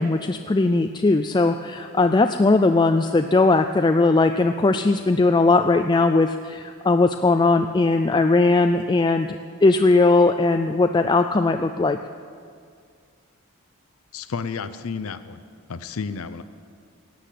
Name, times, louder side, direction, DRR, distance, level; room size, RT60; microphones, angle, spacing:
voice 1, 0.0-9.3 9.6-12.0, left 3 dB, 20° left, 7 dB, 0.3 m, -19 dB
voice 2, 14.1-15.4 15.7-16.4, left 5 dB, 85° left, 12 dB, 0.6 m, -31 dB
16.5 x 10.0 x 7.6 m, 2.1 s
head